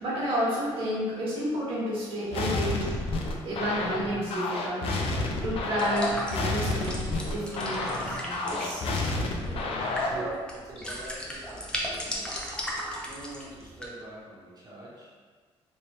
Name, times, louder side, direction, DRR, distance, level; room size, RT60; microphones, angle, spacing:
voice 1, 0.0-8.8 9.2-9.3 9.6-10.3, equal, 60° right, -7 dB, 1.4 m, -31 dB
sound 1, 2.3-10.3, left 2 dB, 65° left, 0.5 m, -30 dB
sound 2, 5.8-13.9, equal, 10° left, 0.6 m, -37 dB
voice 2, 9.4-10.2 10.6-12.3 13.0-15.1, right 1 dB, 40° right, -6 dB, 1.2 m, -45 dB
3.2 x 2.7 x 3.0 m, 1.5 s
cardioid pair, 105°, 11 cm